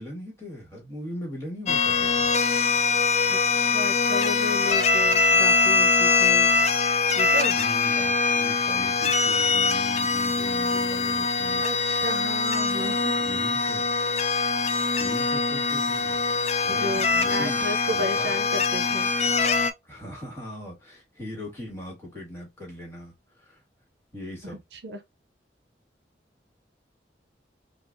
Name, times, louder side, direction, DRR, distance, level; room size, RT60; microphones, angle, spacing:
voice 1, 0.0-2.3 7.6-11.7 13.2-13.8 15.0-16.2 16.6-17.6 17.9-18.3 19.8-23.6 24.1-24.6, equal, 15° left, 1.6 m, -39 dB
sound 1, 1.7-19.7, left 4 dB, 40° left, 0.4 m, -23 dB
voice 2, 3.3-6.5 7.1-7.6 11.6-13.2 16.7-19.1 24.4-25.0, equal, 70° right, 0.6 m, -33 dB
3.9 x 2.3 x 2.4 m
head